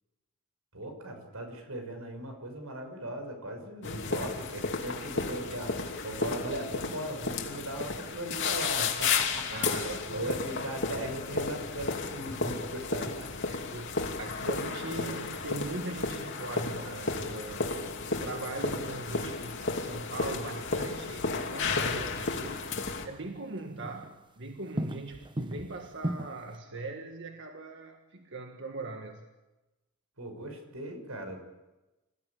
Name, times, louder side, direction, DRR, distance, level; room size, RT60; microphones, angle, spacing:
voice 1, 0.7-9.5 9.9-13.3 14.2-14.3 14.8-15.3 30.2-31.4, right 1 dB, 85° right, 5 dB, 6.2 m, -39 dB
sound 1, 3.8-23.1, left 4 dB, 60° left, 2.8 m, -33 dB
voice 2, 9.5-10.3 13.5-17.7 18.1-29.2, right 2 dB, 60° right, 4 dB, 1.8 m, -40 dB
sound 2, 16.5-16.7 19.9-20.0 21.7-23.3 23.6-24.3 24.5-26.6, right 1 dB, 25° right, 1.0 m, -38 dB
27.5 x 16.0 x 8.8 m, 1.1 s
head